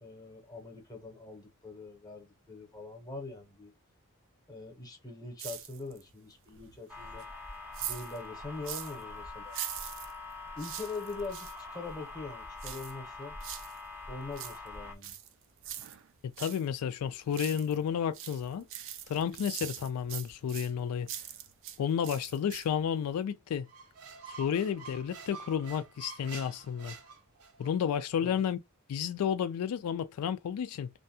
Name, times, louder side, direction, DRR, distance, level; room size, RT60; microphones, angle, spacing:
voice 1, 0.0-3.7 4.5-7.3 7.8-9.6 10.6-13.4 14.1-15.1 28.2-28.4, left 3 dB, 15° left, 0.8 m, -43 dB
sound 1, 5.4-6.1 6.5-9.0 9.5-11.6 12.6-13.8 14.2-16.6 17.0-17.8 18.1-21.8 22.0-22.9 23.2-23.3, right 10 dB, 60° right, 0.4 m, -43 dB
sound 2, 6.9-14.9, left 3 dB, 10° right, 0.5 m, -44 dB
voice 2, 16.2-18.7 19.1-21.1 21.8-23.7 24.4-27.0 27.6-28.6 28.9-30.9, left 8 dB, 80° left, 0.3 m, -31 dB
Squeak, 23.7-27.7, right 5 dB, 80° right, 0.7 m, -48 dB
2.5 x 2.2 x 2.6 m
head